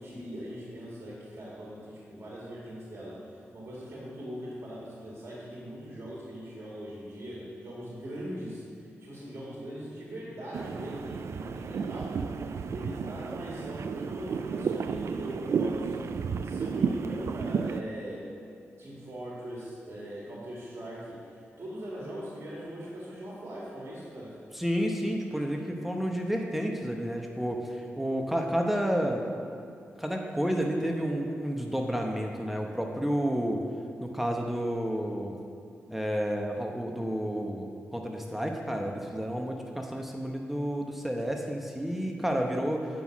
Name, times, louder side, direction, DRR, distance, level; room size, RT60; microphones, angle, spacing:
voice 1, 0.0-8.6 9.0-15.9 16.4-18.3 18.8-24.4, equal, 50° right, -6 dB, 2.3 m, -41 dB
sound 1, 10.5-17.8, right 5 dB, 70° right, 0.4 m, -32 dB
voice 2, 24.5-29.3 30.0-33.6 34.0-35.4 35.9-42.9, equal, 5° right, 2 dB, 0.9 m, -30 dB
9.3 x 5.7 x 6.1 m, 2.5 s
cardioid pair, 70°, 5 cm